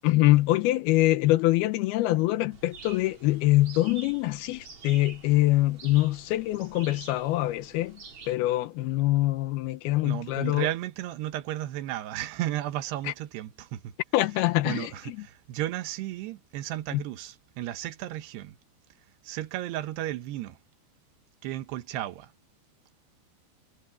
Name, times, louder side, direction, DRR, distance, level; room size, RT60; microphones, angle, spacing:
voice 1, 0.0-8.0 8.3-10.7 13.1-13.2 14.1-15.3 16.9-17.0, left 17 dB, 80° left, 2.6 m, -24 dB
sound 1, 2.5-8.4, right 5 dB, 35° right, 3.7 m, -48 dB
voice 2, 10.0-13.9 14.6-18.6 19.2-20.6 21.4-22.3, right 14 dB, 85° right, 3.2 m, -34 dB
omnidirectional pair, 4.7 m